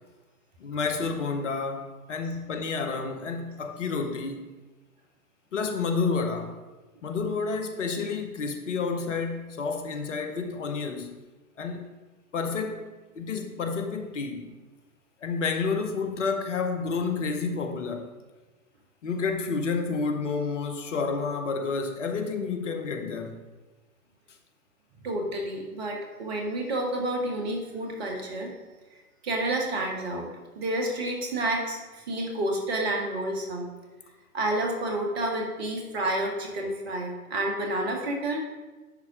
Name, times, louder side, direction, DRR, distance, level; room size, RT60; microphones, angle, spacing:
voice 1, 0.6-4.5 5.5-6.6 7.0-11.2 11.6-11.8 12.3-12.8 13.2-14.5 15.2-18.1 19.0-23.4, left 4 dB, 55° left, 1.0 m, -30 dB
voice 2, 25.0-28.5 29.2-30.3 30.6-33.7 34.3-38.4, right 1 dB, 45° right, 1.9 m, -29 dB
10.5 x 4.3 x 4.9 m
figure-of-eight pair, 120°, 45 cm